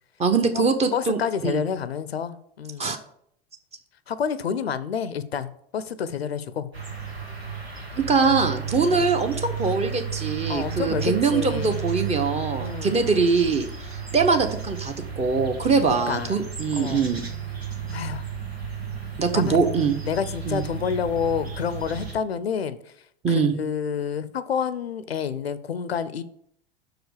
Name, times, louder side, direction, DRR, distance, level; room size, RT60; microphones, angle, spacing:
voice 1, 0.2-1.6 2.8-3.0 8.1-17.2 19.2-20.0 20.5-20.6 23.2-23.5, right 4 dB, 20° right, 6 dB, 1.0 m, -23 dB
voice 2, 0.9-2.9 4.1-6.7 8.8-9.2 10.5-13.1 15.8-17.1 17.9-18.3 19.5-19.6 20.0-22.9 23.3-26.2, left 7 dB, 80° left, 15 dB, 0.6 m, -29 dB
sound 1, 6.7-22.1, right 7 dB, 85° right, 1.6 m, -33 dB
6.3 x 4.9 x 6.5 m, 0.68 s
figure-of-eight pair, 85°, 31 cm